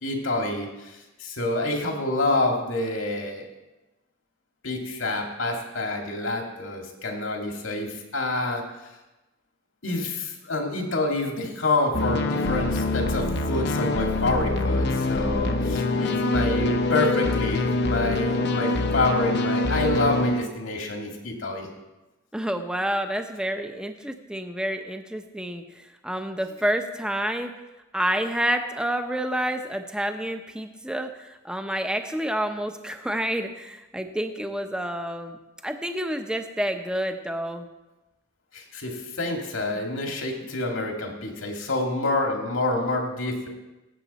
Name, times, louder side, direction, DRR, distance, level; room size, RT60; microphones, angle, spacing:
voice 1, 0.0-3.5 4.6-8.6 9.8-21.7 38.5-43.5, left 2 dB, 80° left, 2 dB, 2.1 m, -27 dB
sound 1, 11.9-20.4, left 2 dB, 55° left, 0.8 m, -25 dB
voice 2, 22.3-27.5 27.9-35.4 35.6-37.7 39.7-39.9, right 1 dB, 5° right, 6 dB, 0.7 m, -29 dB
17.0 x 8.0 x 4.2 m, 1.1 s
head